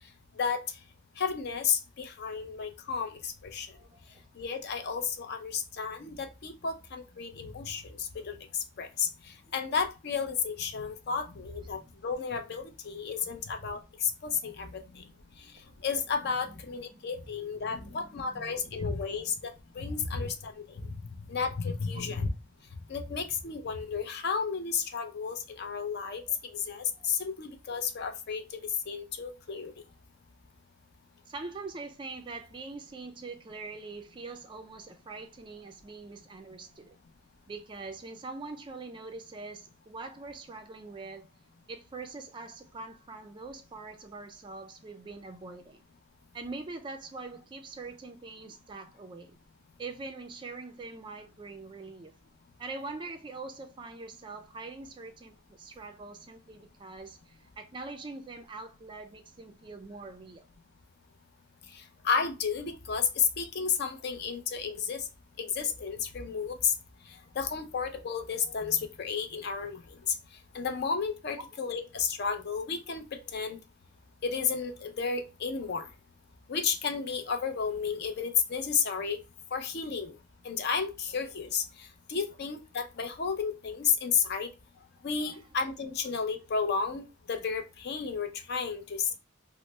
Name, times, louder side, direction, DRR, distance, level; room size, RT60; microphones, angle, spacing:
voice 1, 1.2-3.7 4.4-15.1 15.8-20.9 21.3-22.3 22.9-26.2 26.5-29.7 61.7-65.1 65.4-66.7 67.4-69.8 70.1-70.2 70.5-73.6 74.2-75.9 76.5-79.2 79.5-80.1 80.4-84.5 85.0-89.2, left 6 dB, 50° left, 0.5 m, -32 dB
voice 2, 3.7-4.2 11.7-11.8 14.7-14.8 16.5-16.6 16.9-17.3 17.6-19.3 19.9-20.3 21.1-21.2 21.9-22.2 26.3-26.4 27.0-27.1 31.3-37.0 37.5-41.3 41.7-45.8 46.3-49.4 49.8-52.1 52.6-60.5 85.3-85.4, right 3 dB, 25° right, 0.3 m, -44 dB
3.1 x 2.0 x 3.1 m
head